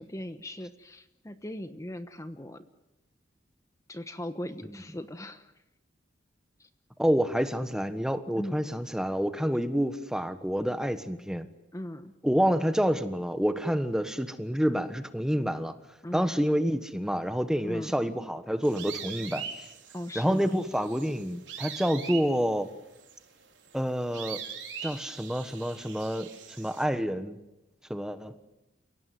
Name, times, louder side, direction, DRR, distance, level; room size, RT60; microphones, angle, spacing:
voice 1, 0.0-2.6 3.9-5.5 6.6-6.7 8.4-8.6 11.7-12.1 16.0-16.3 17.6-17.9 19.9-20.5, left 1 dB, 15° left, 9 dB, 1.1 m, -38 dB
voice 2, 7.0-11.5 12.2-15.7 16.1-19.7 20.1-22.7 23.7-24.4 24.8-26.3 26.6-27.4 27.9-28.4, equal, 5° right, 10 dB, 1.3 m, -28 dB
sound 1, 18.6-26.8, right 8 dB, 75° right, 4.3 m, -42 dB
29.5 x 17.5 x 9.5 m, 0.96 s
head